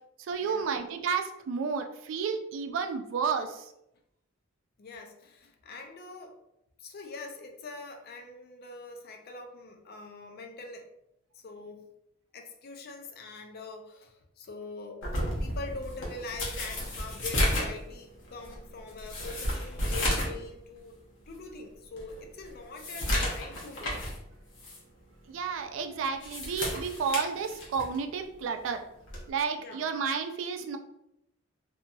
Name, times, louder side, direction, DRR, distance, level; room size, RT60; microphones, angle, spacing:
voice 1, 0.3-3.7 25.3-28.8 29.3-30.8, right 6 dB, 70° right, 7 dB, 0.3 m, -31 dB
voice 2, 4.8-6.4 6.8-10.9 11.3-11.9 12.3-15.1 15.4-21.0 21.3-24.0 28.5-28.6 29.6-29.9, left 3 dB, 50° left, 4 dB, 0.4 m, -43 dB
sound 1, 15.0-20.4 20.8-20.9 21.4-21.5 22.0-24.2 24.6-24.8 26.0-28.0 29.1-29.3, left 1 dB, 70° left, 0.9 m, -32 dB
2.7 x 2.6 x 2.3 m, 0.82 s
head